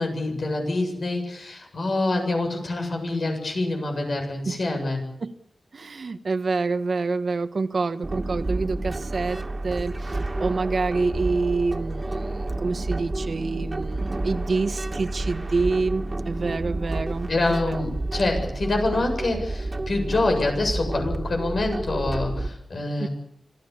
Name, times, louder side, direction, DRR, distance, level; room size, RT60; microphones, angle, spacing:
voice 1, 0.0-5.0 17.3-23.1, left 2 dB, 70° left, 3 dB, 7.7 m, -26 dB
voice 2, 5.7-17.8 23.0-23.1, right 3 dB, 65° right, 9 dB, 1.4 m, -27 dB
sound 1, 8.0-22.5, right 2 dB, 35° right, 2.4 m, -30 dB
26.5 x 17.5 x 8.6 m, 0.75 s
wide cardioid pair, 70°, 0 cm